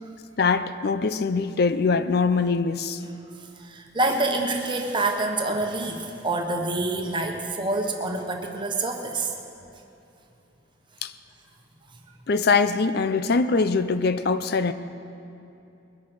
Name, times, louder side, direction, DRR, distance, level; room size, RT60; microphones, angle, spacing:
voice 1, 0.4-3.0 11.0-11.1 12.3-14.7, left 4 dB, 55° left, 11 dB, 0.5 m, -23 dB
voice 2, 3.4-9.3, right 2 dB, 25° right, 2 dB, 1.2 m, -27 dB
21.0 x 8.5 x 6.1 m, 2.8 s
head